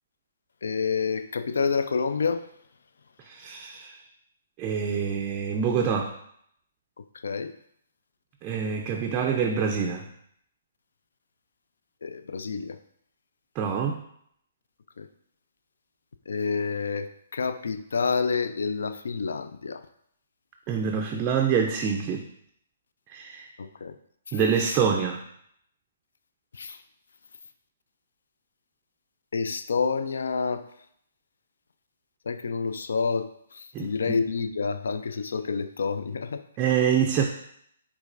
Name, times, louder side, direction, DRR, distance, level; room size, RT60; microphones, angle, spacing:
voice 1, 0.6-2.4 7.2-7.5 12.0-12.8 15.0-15.1 16.3-19.8 23.6-23.9 24.6-24.8 26.6-26.8 29.3-30.6 32.3-33.3 33.8-36.4, left 5 dB, 70° left, 11 dB, 0.3 m, -28 dB
voice 2, 3.3-4.0 4.6-6.1 8.4-10.0 13.6-14.0 20.7-22.2 23.1-23.5 24.3-25.2 33.7-33.9 36.6-37.3, right 7 dB, 30° right, 3 dB, 0.4 m, -26 dB
5.0 x 3.5 x 2.5 m, 0.70 s
figure-of-eight pair, 130°, 0 cm